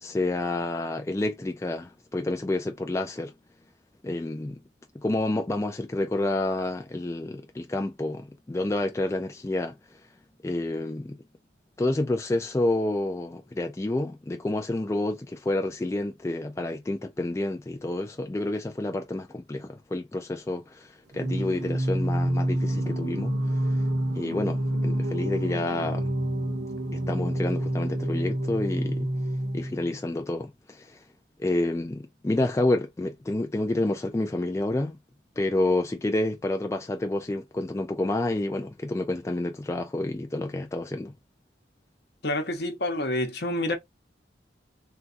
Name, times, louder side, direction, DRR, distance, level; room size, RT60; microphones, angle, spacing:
voice 1, 0.0-3.3 4.0-4.6 4.9-9.7 10.4-11.2 11.8-23.4 24.1-26.1 26.9-29.1 29.5-31.0 31.4-35.0 35.4-41.1, left 2 dB, 15° left, 0.3 m, -29 dB
Singing, 21.1-30.0, right 1 dB, 65° right, 0.7 m, -28 dB
voice 2, 42.2-43.7, left 1 dB, 60° left, 0.9 m, -28 dB
3.8 x 2.3 x 2.5 m
head